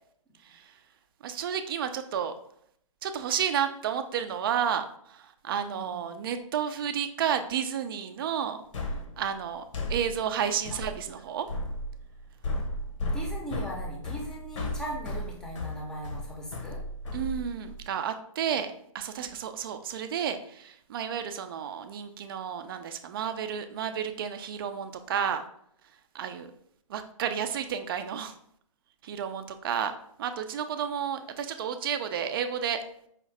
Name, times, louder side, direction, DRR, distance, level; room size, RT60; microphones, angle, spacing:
voice 1, 0.4-0.8 1.2-2.3 3.0-8.6 9.2-11.5 17.1-25.4 26.1-26.5 26.9-28.3 29.0-32.8, right 8 dB, 40° right, 8 dB, 0.4 m, -31 dB
voice 2, 5.6-6.1 13.1-16.8, equal, 5° left, -2 dB, 0.6 m, -39 dB
sound 1, 8.7-17.9, left 1 dB, 60° left, 0.9 m, -35 dB
4.9 x 2.6 x 3.2 m, 0.68 s
hypercardioid pair, 140°, 18 cm